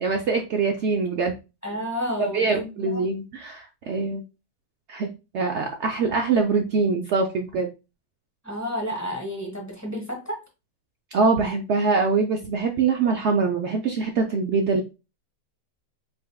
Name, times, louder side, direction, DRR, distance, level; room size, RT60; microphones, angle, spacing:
voice 1, 0.0-1.3 2.2-4.2 4.9-5.1 5.3-7.7 11.1-14.9, right 4 dB, 85° right, 0.6 m, -23 dB
voice 2, 1.6-3.0 8.4-10.4, equal, 10° left, 1.1 m, -31 dB
5.4 x 3.4 x 2.2 m
omnidirectional pair, 1.9 m